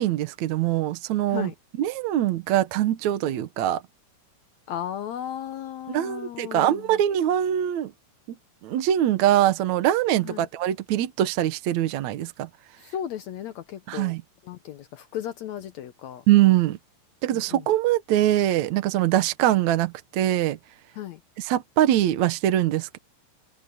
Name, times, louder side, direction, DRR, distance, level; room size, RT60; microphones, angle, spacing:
voice 1, 0.0-1.5 1.8-3.8 5.9-7.9 8.6-12.5 13.9-14.2 16.3-16.8 17.2-20.6 21.4-23.0, right 12 dB, 65° right, 2.1 m, -23 dB
voice 2, 4.7-7.0 10.2-10.5 12.8-14.1 14.4-16.2 17.3-17.6 20.9-21.2, left 10 dB, 70° left, 1.7 m, -35 dB
omnidirectional pair, 4.0 m